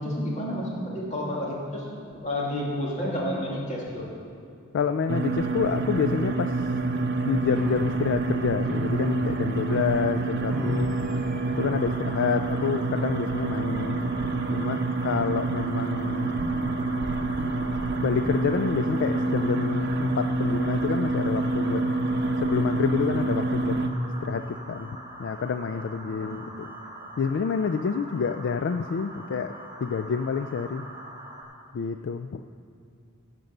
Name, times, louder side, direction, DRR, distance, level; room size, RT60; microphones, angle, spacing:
voice 1, 0.0-1.9 2.1-4.1 25.8-26.4, left 1 dB, 35° left, -4 dB, 2.4 m, -31 dB
voice 2, 4.7-6.5 7.2-10.9 11.6-14.1 14.5-16.4 18.0-21.8 22.4-23.8 24.2-26.7 27.2-29.5 29.8-30.9 31.7-32.4, left 6 dB, 55° left, 9 dB, 0.3 m, -28 dB
sound 1, 5.1-23.9, right 3 dB, 50° right, 0.7 m, -27 dB
Piano, 7.5-16.0, left 1 dB, ahead, 1.0 m, -39 dB
sound 2, 11.5-31.4, right 1 dB, 20° right, 1.6 m, -43 dB
15.5 x 5.3 x 6.6 m, 2.4 s
head